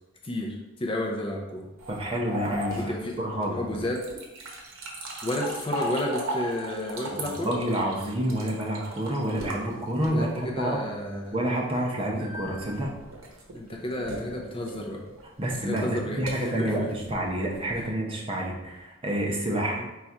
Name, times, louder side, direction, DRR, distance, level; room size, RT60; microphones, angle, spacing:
voice 1, 0.2-1.7 2.8-3.2 3.5-4.0 5.2-7.5 10.1-11.4 13.5-15.0 15.6-16.9 17.7-17.9 19.8-19.9, left 1 dB, 25° left, 0 dB, 0.4 m, -31 dB
sound 1, 1.8-10.4 12.2-17.9, right 1 dB, 75° right, 0.8 m, -37 dB
voice 2, 1.9-2.9 3.2-3.7 7.2-10.8 11.3-12.9 15.4-19.8, right 1 dB, 25° right, -2 dB, 0.6 m, -28 dB
4.0 x 2.4 x 4.4 m, 1.0 s
head